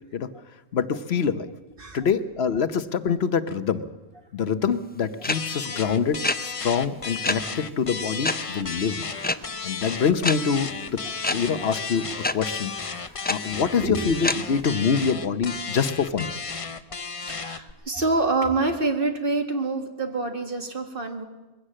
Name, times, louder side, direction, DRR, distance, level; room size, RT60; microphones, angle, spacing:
voice 1, 0.7-1.5 1.9-3.8 4.3-9.1 9.6-11.0 11.3-16.3, left 6 dB, 70° left, 12 dB, 1.1 m, -25 dB
sound 1, 5.2-5.3 6.2-6.4 7.2-7.3 8.2-8.3 9.2-9.4 10.2-10.4 11.2-11.3 12.2-12.3 13.2-13.3 14.2-14.3, left 2 dB, 15° left, 0.3 m, -23 dB
sound 2, 5.3-17.7, left 5 dB, 35° left, 0.8 m, -34 dB
voice 2, 13.2-14.1 16.9-21.2, right 3 dB, 55° right, 5 dB, 2.1 m, -27 dB
22.0 x 16.5 x 7.6 m, 1.1 s
omnidirectional pair, 1.1 m